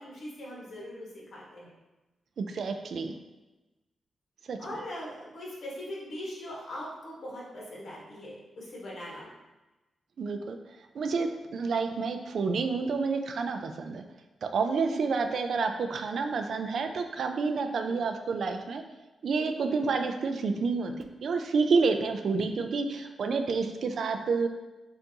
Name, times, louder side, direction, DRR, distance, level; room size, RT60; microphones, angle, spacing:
voice 1, 0.0-1.7 4.6-9.3 14.8-15.2 17.7-18.0 19.7-20.0, left 1 dB, 60° left, -5 dB, 1.3 m, -41 dB
voice 2, 2.4-3.1 4.5-4.6 10.2-10.6 10.9-14.0 14.4-18.8 19.2-24.5, right 4 dB, 65° right, 6 dB, 0.3 m, -29 dB
5.8 x 2.6 x 2.8 m, 1.1 s
wide cardioid pair, 130°, 0 cm